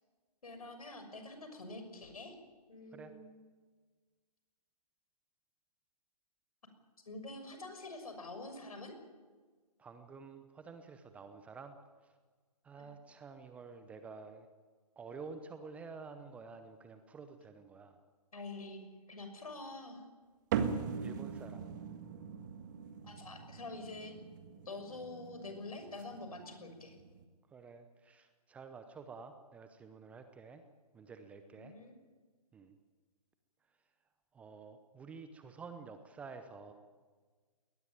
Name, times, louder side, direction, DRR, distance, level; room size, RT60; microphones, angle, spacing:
voice 1, 0.4-2.3 2.7-3.4 7.1-8.9 12.8-12.9 18.3-20.0 23.0-24.1 24.6-27.0 31.5-31.9, left 2 dB, 65° left, 7 dB, 6.4 m, -46 dB
voice 2, 9.8-11.7 12.6-14.5 15.0-18.0 21.0-21.6 27.5-30.6 30.9-31.7 32.5-32.7 34.3-36.7, right 5 dB, 5° right, 8 dB, 0.8 m, -50 dB
sound 1, 20.5-27.2, right 7 dB, 30° right, 1.7 m, -41 dB
21.5 x 19.0 x 9.1 m, 1.4 s
figure-of-eight pair, 140°, 20 cm